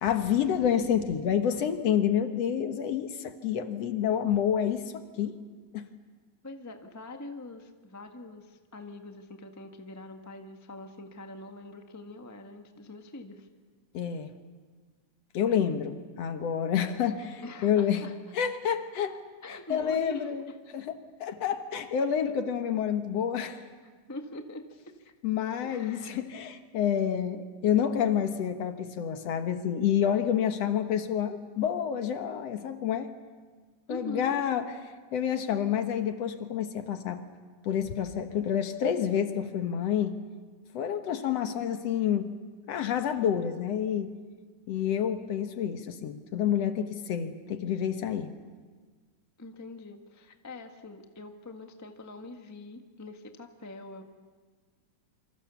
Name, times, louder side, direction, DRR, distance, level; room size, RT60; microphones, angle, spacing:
voice 1, 0.0-5.4 5.7-5.9 13.9-14.3 15.3-18.1 18.3-19.2 19.7-20.5 20.7-23.6 25.2-33.1 33.9-34.7 35.1-37.2 37.6-40.2 40.7-42.3 42.7-44.1 44.7-48.3, left 9 dB, 60° left, 8 dB, 2.1 m, -28 dB
voice 2, 6.4-13.5 17.4-18.1 19.4-20.6 24.1-24.9 25.6-26.2 33.9-34.7 49.4-54.0, left 1 dB, 20° left, 4 dB, 0.4 m, -44 dB
28.0 x 25.5 x 7.0 m, 1.5 s
omnidirectional pair, 3.5 m